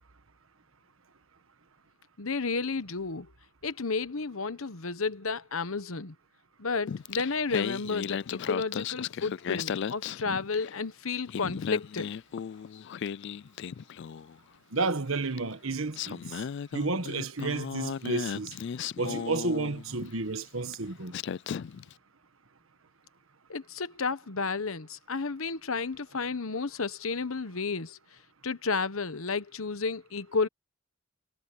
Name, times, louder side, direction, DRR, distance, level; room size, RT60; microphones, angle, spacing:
voice 1, 2.2-3.3 3.6-6.1 6.6-12.1 23.5-28.0 28.4-30.5, left 4 dB, 75° left, 1.1 m, -32 dB
Singing, 6.9-10.8 11.1-14.4 15.4-15.5 15.9-20.1 20.7-20.9 21.1-21.9, left 7 dB, 55° left, 0.3 m, -36 dB
voice 2, 14.7-16.4 16.7-18.5 19.0-21.1, right 3 dB, 70° right, 1.4 m, -31 dB
head